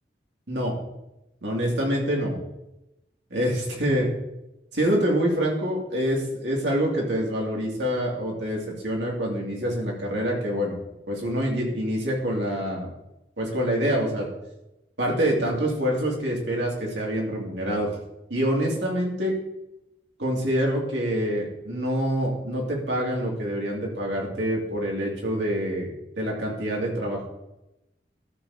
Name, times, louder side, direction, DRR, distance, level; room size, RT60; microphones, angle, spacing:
voice 1, 1.4-2.4 3.3-4.1 4.7-10.8 11.1-12.9 13.4-14.3 15.0-17.9 18.3-19.3 20.2-25.9 26.2-27.3, equal, 80° right, -2 dB, 2.5 m, -26 dB
13.0 x 6.9 x 2.8 m, 0.91 s
head